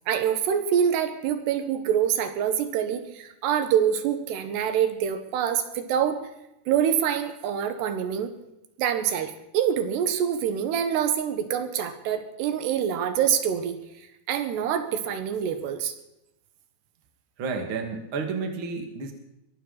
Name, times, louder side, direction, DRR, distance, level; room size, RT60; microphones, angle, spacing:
voice 1, 0.1-6.2 6.7-8.3 8.8-13.8 14.3-15.9, right 9 dB, 85° right, 8 dB, 3.6 m, -25 dB
voice 2, 17.4-19.1, right 4 dB, 40° right, 4 dB, 2.3 m, -31 dB
22.0 x 15.0 x 4.1 m, 0.87 s
omnidirectional pair, 4.7 m